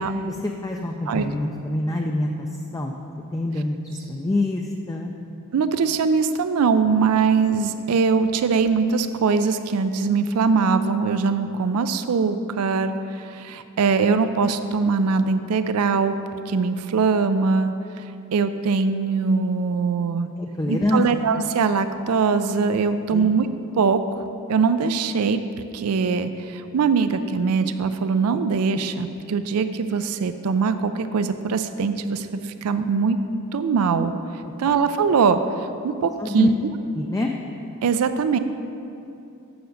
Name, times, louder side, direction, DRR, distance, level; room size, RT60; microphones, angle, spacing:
voice 1, 0.0-3.0 3.3-5.1 20.4-21.0 23.1-23.3 34.4-34.5 36.2-36.5 36.9-37.3, left 1 dB, 15° left, 1 dB, 0.3 m, -26 dB
voice 2, 5.5-16.1 16.5-17.7 18.3-20.3 20.7-23.5 23.8-25.4 25.7-33.2 33.5-34.1 34.6-36.5 37.8-38.4, right 5 dB, 80° right, 10 dB, 0.4 m, -22 dB
7.0 x 6.4 x 6.4 m, 2.7 s
head